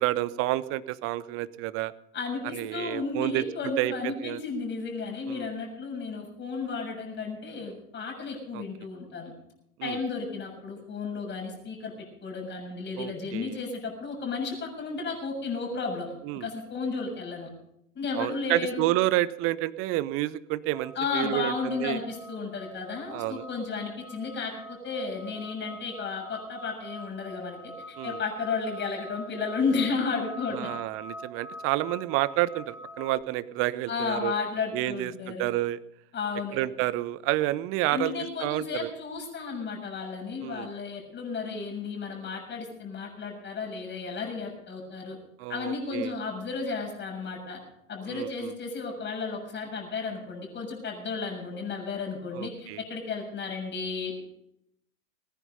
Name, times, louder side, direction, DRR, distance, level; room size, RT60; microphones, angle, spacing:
voice 1, 0.0-1.9 2.5-4.4 5.2-5.5 8.5-8.6 9.8-10.0 13.0-13.6 16.2-16.5 18.1-22.0 23.1-23.5 28.0-28.2 30.5-34.3 34.7-35.8 36.5-38.1 38.4-38.9 40.4-40.7 45.4-46.1 48.1-48.5 52.3-52.8, right 16 dB, 35° right, 18 dB, 0.7 m, -29 dB
voice 2, 2.1-9.3 9.8-16.1 16.4-17.5 17.9-18.9 20.9-30.7 33.9-35.5 36.1-36.6 37.9-45.2 45.5-47.6 47.9-54.2, left 4 dB, 25° left, 1 dB, 6.9 m, -33 dB
sound 1, 20.7-33.1, right 1 dB, ahead, 4.9 m, -44 dB
20.0 x 10.5 x 5.5 m, 0.78 s
figure-of-eight pair, 90°, 41 cm